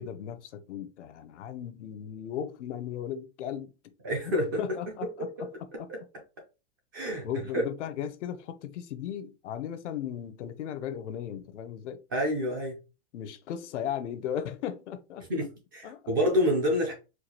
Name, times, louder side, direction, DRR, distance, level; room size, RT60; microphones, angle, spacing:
voice 1, 0.0-3.7 4.2-4.3 4.6-5.5 5.8-5.9 7.2-12.0 13.1-15.3 15.8-16.0, left 9 dB, 75° left, 0.7 m, -36 dB
voice 2, 4.0-4.6 5.4-5.5 5.9-6.0 6.9-7.3 12.1-12.8 15.3-15.5 15.7-16.9, equal, 20° right, 0.4 m, -27 dB
4.5 x 2.3 x 2.7 m
supercardioid pair, 175°, 36 cm